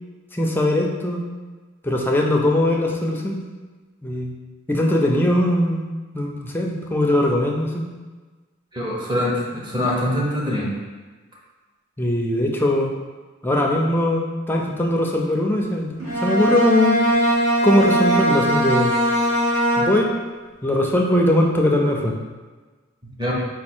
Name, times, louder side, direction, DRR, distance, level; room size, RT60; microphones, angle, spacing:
voice 1, 0.3-1.2 1.8-3.4 4.0-4.3 4.7-5.9 6.1-7.8 12.0-12.9 13.4-17.0 17.6-18.9 19.8-20.1 20.6-22.1, left 1 dB, 10° left, 0 dB, 0.4 m, -20 dB
voice 2, 8.7-10.7 23.0-23.3, left 1 dB, 20° right, -4 dB, 0.9 m, -24 dB
Bowed string instrument, 16.0-20.3, right 1 dB, 65° right, 1.2 m, -20 dB
4.3 x 2.4 x 4.3 m, 1.3 s
head